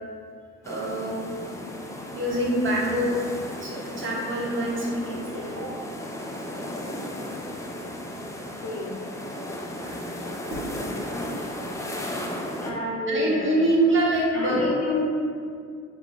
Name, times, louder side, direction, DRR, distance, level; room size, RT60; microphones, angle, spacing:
sound 1, 0.6-12.7, left 1 dB, 10° left, 0.3 m, -35 dB
voice 1, 0.7-1.2 2.1-3.1 3.6-5.7 9.7-10.0 10.5-10.6 13.1-14.7 14.9-15.0, right 1 dB, 40° right, -4 dB, 0.9 m, -25 dB
voice 2, 5.3-5.9 8.6-8.9 10.1-10.2 11.0-11.1 12.6-13.9 14.3-15.0, left 2 dB, 60° left, -5 dB, 1.1 m, -30 dB
3.0 x 2.3 x 3.9 m, 2.2 s
cardioid pair, 90°, 30 cm